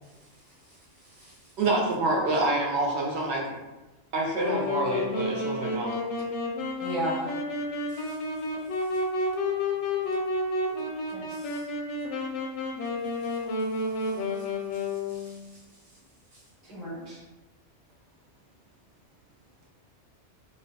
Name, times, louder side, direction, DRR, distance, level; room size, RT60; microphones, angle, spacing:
voice 1, 0.1-1.5 7.9-8.2 13.2-13.4 13.7-16.0 16.3-16.4, right 1 dB, 45° right, -6 dB, 1.0 m, -58 dB
voice 2, 1.6-3.4 4.1-6.0, right 2 dB, 70° right, -2 dB, 0.9 m, -27 dB
Wind instrument woodwind instrument, 4.4-15.3, left 2 dB, 85° left, 0.9 m, -30 dB
voice 3, 6.8-7.3 11.1-11.6 16.7-17.2, equal, 35° left, -8 dB, 0.5 m, -33 dB
3.7 x 2.1 x 2.7 m, 1.1 s
omnidirectional pair, 1.2 m